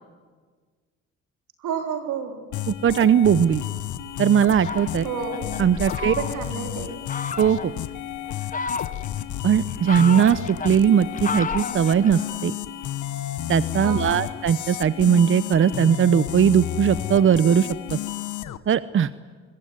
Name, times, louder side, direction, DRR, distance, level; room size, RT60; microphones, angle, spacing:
voice 1, 1.6-2.4 5.0-5.6 6.0-7.0 13.8-14.3, right 6 dB, 85° right, 5 dB, 3.5 m, -31 dB
sound 1, 2.5-18.6, left 12 dB, 75° left, 1.2 m, -32 dB
voice 2, 2.7-3.6 4.2-5.1 5.6-6.1 7.4-7.7 9.4-12.6 13.5-18.0 18.7-19.1, right 8 dB, 45° right, 15 dB, 0.8 m, -19 dB
Fowl, 4.5-6.6 7.1-7.7 8.3-9.2 9.7-12.4, left 5 dB, 25° left, 1.0 m, -32 dB
25.0 x 22.0 x 9.5 m, 1.5 s
cardioid pair, 90°, 30 cm